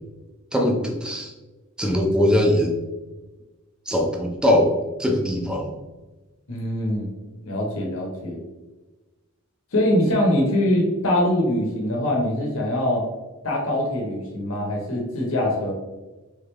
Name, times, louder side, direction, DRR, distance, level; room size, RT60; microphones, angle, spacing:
voice 1, 0.5-1.3 1.8-2.7 3.9-4.7 5.0-5.7, left 1 dB, 5° right, 0 dB, 0.5 m, -21 dB
voice 2, 6.5-7.1 7.4-8.4 9.7-13.0 13.4-15.7, left 1 dB, 70° left, -1 dB, 0.9 m, -23 dB
3.5 x 3.2 x 3.3 m, 1.2 s
head